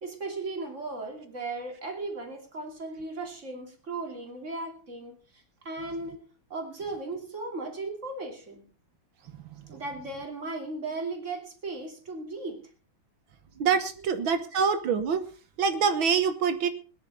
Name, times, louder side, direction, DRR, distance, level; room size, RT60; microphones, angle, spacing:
voice 1, 0.0-6.2 6.5-8.7 9.7-12.7 14.5-14.6, right 3 dB, 35° right, 3 dB, 3.0 m, -36 dB
voice 2, 13.6-15.2 15.6-16.7, right 6 dB, 70° right, 10 dB, 1.9 m, -25 dB
20.0 x 10.5 x 4.1 m, 0.36 s
omnidirectional pair, 2.3 m